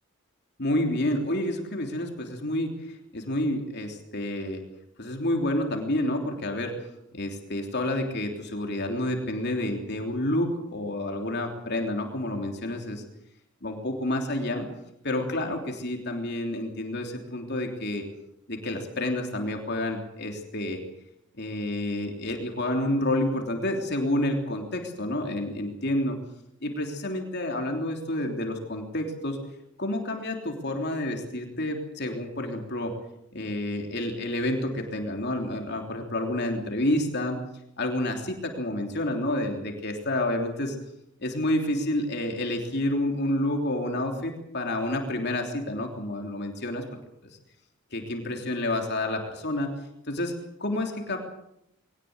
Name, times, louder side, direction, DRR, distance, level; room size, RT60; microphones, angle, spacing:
voice 1, 0.6-4.6 5.0-6.7 7.1-13.0 13.6-14.6 15.0-18.0 18.5-20.8 21.4-26.2 26.6-29.4 29.8-32.9 33.3-37.4 37.8-40.8 41.2-46.8 47.9-49.7 50.1-50.3 50.6-51.2, left 1 dB, 50° left, 3 dB, 3.3 m, -29 dB
22.0 x 19.0 x 8.0 m, 0.81 s
head